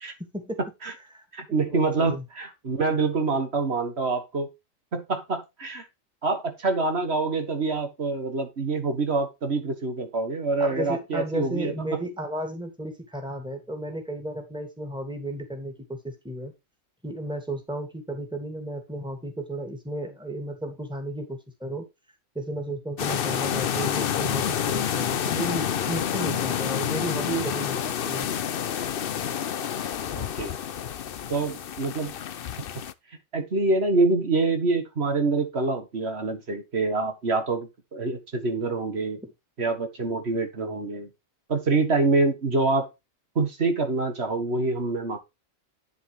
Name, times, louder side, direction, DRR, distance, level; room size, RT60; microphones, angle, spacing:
voice 1, 0.2-0.6 1.1-2.2 10.6-16.5 17.0-21.9 22.3-28.3 39.2-39.3, right 1 dB, 5° right, 5 dB, 2.4 m, -34 dB
voice 2, 1.3-4.5 4.9-5.8 6.2-12.0 30.2-30.5 31.3-32.1 33.3-39.2 39.6-41.1 41.5-42.9 43.4-45.2, right 3 dB, 50° right, 7 dB, 1.8 m, -26 dB
sound 1, 23.0-32.9, left 9 dB, 55° left, 0.7 m, -28 dB
9.9 x 7.0 x 3.3 m, 0.23 s
omnidirectional pair, 1.4 m